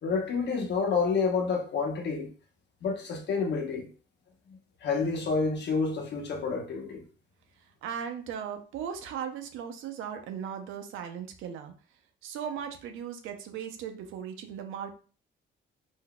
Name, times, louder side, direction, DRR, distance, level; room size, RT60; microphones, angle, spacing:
voice 1, 0.0-2.3 2.8-3.9 4.8-7.1, left 4 dB, 60° left, 0.9 m, -29 dB
voice 2, 7.8-11.7 12.2-15.0, right 8 dB, 85° right, 0.5 m, -37 dB
3.8 x 2.6 x 2.2 m
cardioid pair, 90°, 20 cm